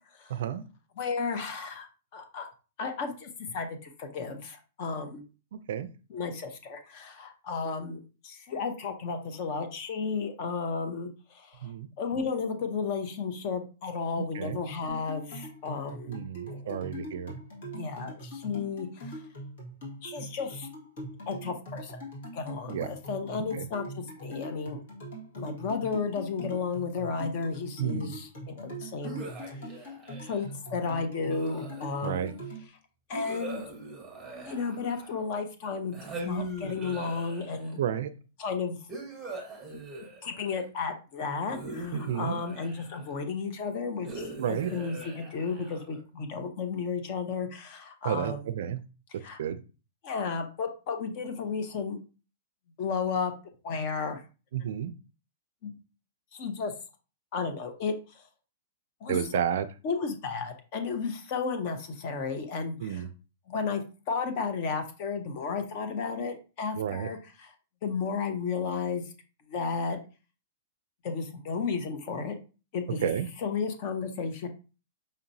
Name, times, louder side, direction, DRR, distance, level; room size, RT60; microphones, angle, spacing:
voice 1, 0.3-0.6 5.5-5.9 11.6-11.9 14.2-14.6 16.1-17.3 22.7-22.9 23.5-23.7 27.8-28.2 32.0-32.3 37.8-38.1 41.9-42.4 44.4-44.7 48.0-48.8 49.4-49.6 54.5-54.9 59.1-59.7 62.8-63.1 66.8-67.1 73.0-73.3, right 9 dB, 60° right, 13 dB, 0.4 m, -31 dB
voice 2, 1.0-1.9 2.1-2.5 2.8-5.2 6.1-11.7 12.0-16.1 16.5-16.8 17.7-19.2 20.0-20.7 21.3-22.0 22.3-24.8 25.4-29.2 30.2-32.3 33.1-33.6 34.4-37.8 38.4-38.8 40.2-48.5 49.2-49.4 50.0-52.0 52.8-53.3 53.6-54.2 55.6-55.7 56.3-56.7 57.3-58.2 59.0-59.2 59.8-63.1 63.5-67.5 67.8-69.0 69.5-70.0 71.0-72.4 72.7-73.1 73.4-74.5, left 5 dB, 35° left, 7 dB, 0.6 m, -33 dB
sound 1, 14.9-32.7, equal, 60° left, 1.7 m, -42 dB
sound 2, 29.0-30.6 31.3-32.2 33.1-35.3 35.9-37.8 38.9-40.7 41.5-43.1 44.0-46.0, right 2 dB, 5° right, 1.0 m, -41 dB
5.2 x 2.8 x 2.7 m, 0.33 s
hypercardioid pair, 170°, 0 cm